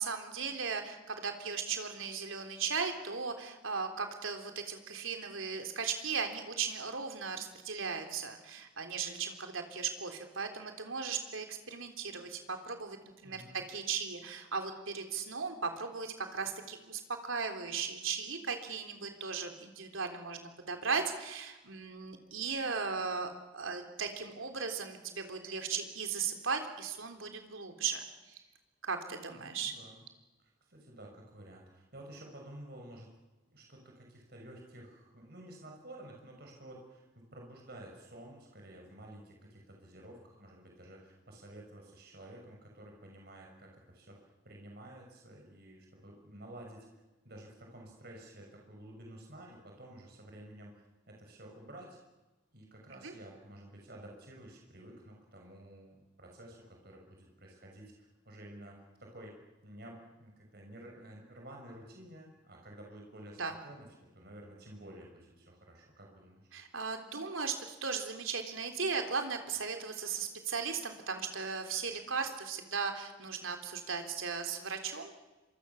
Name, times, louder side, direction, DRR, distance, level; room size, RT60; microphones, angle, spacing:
voice 1, 0.0-13.4 13.7-28.4 28.8-29.7 52.9-53.1 63.4-63.5 66.5-75.2, right 5 dB, 80° right, 5 dB, 3.6 m, -37 dB
voice 2, 13.2-13.6 29.3-30.0 30.4-33.1 33.5-44.2 44.4-46.9 47.2-52.0 52.5-59.3 59.6-63.9 64.1-66.5, right 1 dB, 50° right, 0 dB, 6.2 m, -51 dB
26.0 x 25.0 x 7.2 m, 1.1 s
head